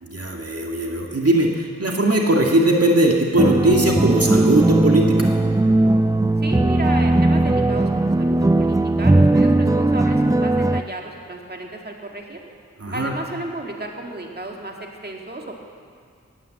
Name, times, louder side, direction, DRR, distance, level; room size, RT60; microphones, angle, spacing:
voice 1, 0.0-5.3 12.8-13.1, right 1 dB, 55° right, 0 dB, 1.9 m, -19 dB
sound 1, 3.4-10.8, right 2 dB, 10° right, 0.4 m, -18 dB
voice 2, 6.4-12.4 12.9-15.6, right 2 dB, 35° right, 1 dB, 2.0 m, -33 dB
18.5 x 9.7 x 7.7 m, 2.3 s
wide cardioid pair, 40°, 29 cm